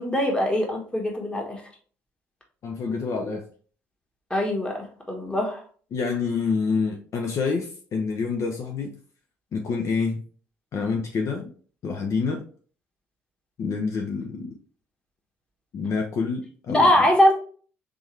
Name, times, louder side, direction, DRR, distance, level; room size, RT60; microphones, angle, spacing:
voice 1, 0.0-1.6 4.3-5.6 16.7-17.3, left 1 dB, 15° left, 1 dB, 1.4 m, -22 dB
voice 2, 2.6-3.4 5.9-9.0 9.5-10.2 10.7-11.5 11.8-12.4 13.6-14.5 15.7-16.9, left 5 dB, 50° left, 2 dB, 0.6 m, -27 dB
3.5 x 3.3 x 3.2 m, 0.43 s
hypercardioid pair, 55°, 7 cm